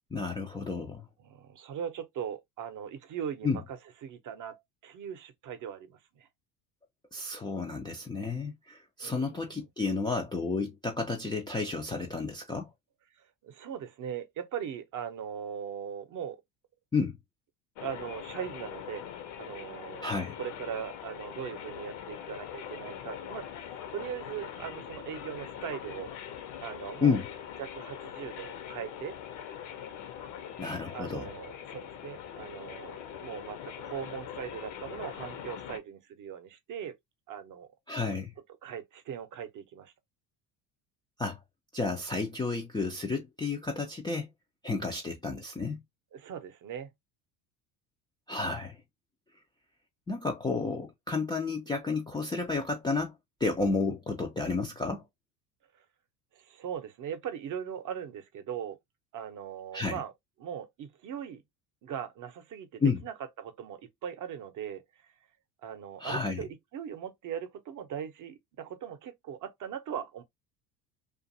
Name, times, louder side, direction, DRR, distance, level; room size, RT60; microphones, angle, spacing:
voice 1, 0.1-1.1 3.4-3.6 7.1-12.7 16.9-17.2 20.0-20.4 27.0-27.2 30.6-31.4 37.9-38.3 41.2-41.4 41.7-44.3 44.6-45.8 48.3-48.8 50.1-55.0 59.7-60.0 62.8-63.0 66.0-66.5, left 4 dB, 10° left, 0.3 m, -31 dB
voice 2, 1.2-6.3 9.0-9.6 13.2-16.4 17.8-19.0 19.4-26.1 26.6-27.2 27.6-29.2 30.9-37.0 37.3-37.7 38.6-39.9 44.8-45.0 46.1-46.9 56.3-58.8 59.1-60.1 60.4-61.4 61.8-64.8 65.6-70.2, right 8 dB, 40° right, 0.7 m, -40 dB
sound 1, 17.8-35.8, left 9 dB, 65° left, 0.8 m, -42 dB
2.5 x 2.4 x 2.6 m
hypercardioid pair, 75°, 47 cm